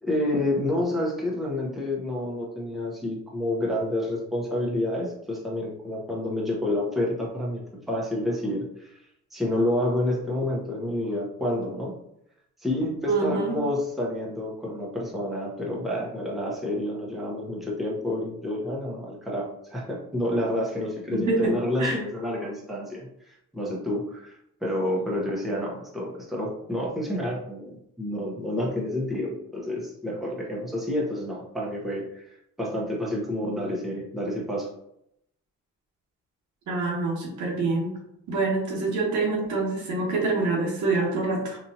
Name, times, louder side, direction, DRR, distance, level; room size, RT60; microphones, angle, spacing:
voice 1, 0.0-9.0 9.3-11.9 12.6-24.3 24.6-34.7, left 1 dB, ahead, -3 dB, 0.9 m, -29 dB
voice 2, 13.1-13.6 17.5-17.6 21.1-21.5 21.8-22.0 36.7-38.0 38.3-41.6, right 3 dB, 70° right, -2 dB, 1.3 m, -26 dB
4.1 x 2.7 x 2.8 m, 0.77 s
cardioid pair, 90°, 30 cm